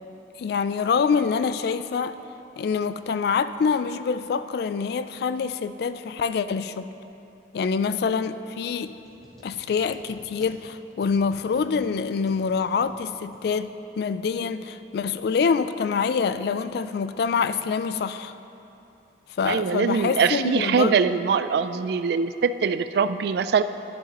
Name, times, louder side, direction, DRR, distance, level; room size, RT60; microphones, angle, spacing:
voice 1, 0.4-2.2 2.6-6.9 7.5-9.0 9.4-18.3 19.4-21.0, left 5 dB, 60° left, 12 dB, 0.3 m, -25 dB
sound 1, 8.9-14.0, equal, ahead, 1.6 m, -53 dB
voice 2, 19.5-23.6, right 6 dB, 60° right, 12 dB, 0.3 m, -23 dB
11.0 x 10.5 x 3.0 m, 2.9 s
head